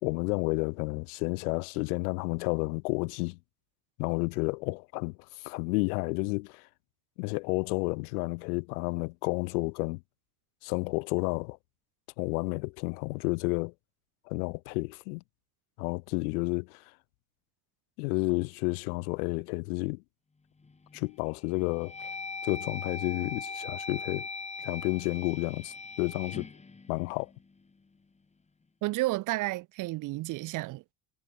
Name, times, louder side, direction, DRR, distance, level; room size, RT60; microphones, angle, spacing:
voice 1, 0.0-3.4 4.0-6.7 7.2-10.0 10.6-11.6 12.2-13.7 14.3-15.2 15.8-16.8 18.0-20.0 20.9-21.9 22.4-24.3 24.6-26.5 26.9-27.3, left 28 dB, 80° left, 1.2 m, -31 dB
sound 1, 20.6-21.1 21.6-27.7, left 4 dB, 15° left, 2.2 m, -40 dB
voice 2, 28.8-30.9, right 19 dB, 45° right, 0.5 m, -31 dB
supercardioid pair, 100°, 44 cm